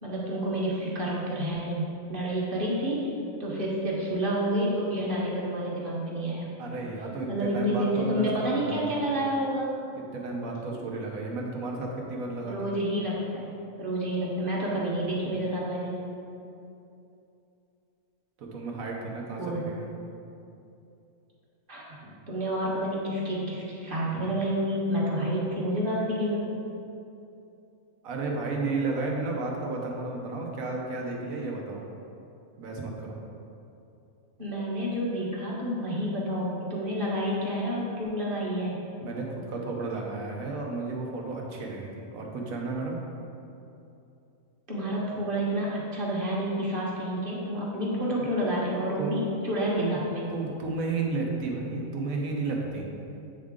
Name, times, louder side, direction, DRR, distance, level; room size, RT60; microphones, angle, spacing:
voice 1, 0.0-3.1 3.4-6.5 7.3-9.7 12.4-13.4 13.8-16.0 19.4-19.6 21.7-21.8 22.3-26.5 34.4-38.8 44.7-50.3, equal, 40° right, -5 dB, 1.3 m, -29 dB
voice 2, 6.6-9.2 9.9-12.7 18.4-19.9 28.0-31.9 32.6-33.2 39.0-43.0 49.0-49.2 49.8-50.0 50.3-52.9, right 3 dB, 85° right, -1 dB, 1.3 m, -33 dB
8.2 x 3.7 x 3.6 m, 2.7 s
omnidirectional pair, 1.4 m